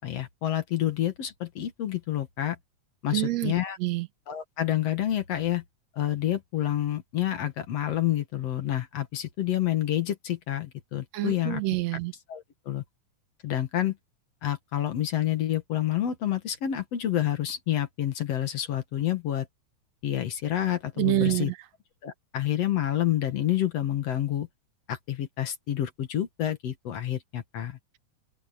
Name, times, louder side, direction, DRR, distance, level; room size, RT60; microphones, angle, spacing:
voice 1, 0.0-2.6 3.0-3.8 4.3-5.6 6.0-11.6 12.3-12.8 13.4-14.0 14.4-19.5 20.0-21.5 22.0-24.5 24.9-27.8, left 12 dB, 60° left, 2.4 m, -28 dB
voice 2, 3.1-3.5 3.8-4.1 11.1-12.1 21.0-21.6, right 18 dB, 70° right, 1.8 m, -27 dB
omnidirectional pair, 3.5 m